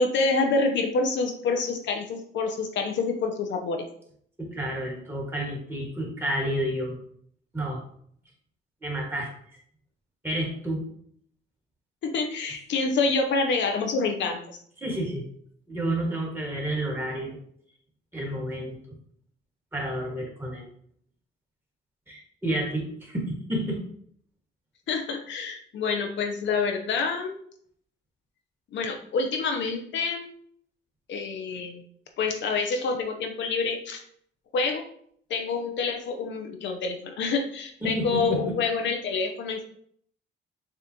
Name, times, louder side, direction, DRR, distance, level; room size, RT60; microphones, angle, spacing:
voice 1, 0.0-3.8 12.0-14.4 24.9-27.3 28.7-30.3 31.1-31.8 32.2-34.0 34.5-34.8 35.3-39.6, left 4 dB, 65° left, 4 dB, 0.7 m, -27 dB
voice 2, 4.4-6.9 7.5-7.8 8.8-9.3 10.2-10.8 14.8-15.2 15.7-17.4 18.1-18.8 19.7-20.6 22.1-23.8 37.8-38.5, right 1 dB, 10° right, -2 dB, 1.7 m, -30 dB
6.9 x 2.4 x 2.8 m, 0.64 s
cardioid pair, 90°, 20 cm